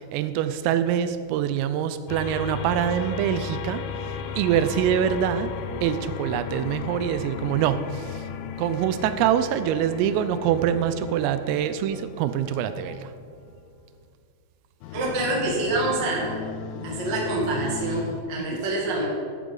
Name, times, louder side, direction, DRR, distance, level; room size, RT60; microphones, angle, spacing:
voice 1, 0.0-5.5 5.8-8.3 8.6-13.1 16.8-16.9, right 9 dB, 85° right, 11 dB, 3.2 m, -25 dB
sound 1, 2.1-13.6 14.8-18.2, left 7 dB, 85° left, 3.4 m, -35 dB
voice 2, 14.9-16.3 16.8-19.1, right 2 dB, 65° right, -3 dB, 1.0 m, -26 dB
12.5 x 11.0 x 3.9 m, 2.2 s
omnidirectional pair, 5.9 m